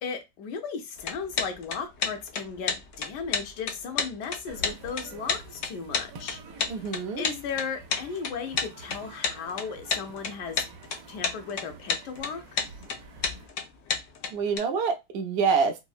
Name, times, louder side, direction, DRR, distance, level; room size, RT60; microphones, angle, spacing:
voice 1, 0.0-6.9 7.2-10.6 11.1-12.6, left 6 dB, 85° left, 5 dB, 1.3 m, -36 dB
sound 1, 1.0-14.6, left 6 dB, 65° left, 0.8 m, -31 dB
sound 2, 4.5-13.5, right 3 dB, 85° right, 1.3 m, -48 dB
voice 2, 6.7-7.2 14.3-15.8, right 5 dB, 65° right, 5 dB, 0.6 m, -26 dB
3.6 x 2.0 x 2.4 m, 0.21 s
omnidirectional pair, 1.8 m